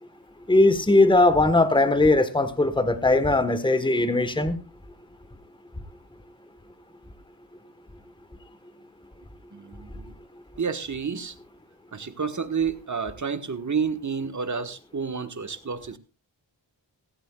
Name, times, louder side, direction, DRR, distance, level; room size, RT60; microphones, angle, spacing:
voice 1, 0.5-4.6, left 2 dB, 10° left, 11 dB, 1.3 m, -19 dB
voice 2, 9.5-10.1 10.6-11.3 11.9-16.0, right 6 dB, 40° right, 9 dB, 1.4 m, -30 dB
16.5 x 15.5 x 2.4 m, 0.31 s
wide cardioid pair, 85°, 46 cm